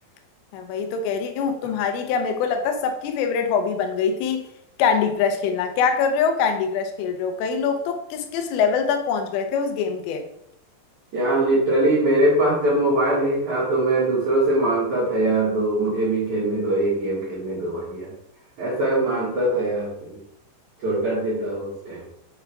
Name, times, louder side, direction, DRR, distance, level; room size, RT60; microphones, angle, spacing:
voice 1, 0.5-4.5 4.8-10.3, left 6 dB, 80° left, 6 dB, 3.2 m, -23 dB
voice 2, 11.1-18.1 18.6-20.2 20.8-22.0, right 1 dB, 55° right, -7 dB, 2.2 m, -22 dB
7.0 x 5.8 x 3.4 m, 0.75 s
omnidirectional pair, 5.7 m